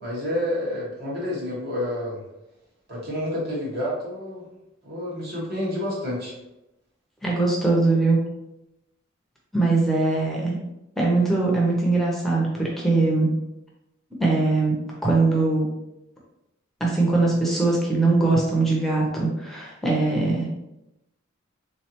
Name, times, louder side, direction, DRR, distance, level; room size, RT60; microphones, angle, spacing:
voice 1, 0.0-2.2 2.9-4.4 4.8-6.3, left 1 dB, 50° right, -5 dB, 1.4 m, -29 dB
voice 2, 7.2-8.2 9.5-10.6 11.0-13.3 14.2-15.7 16.8-20.5, right 3 dB, ahead, -4 dB, 0.7 m, -21 dB
3.8 x 3.2 x 2.9 m, 0.91 s
head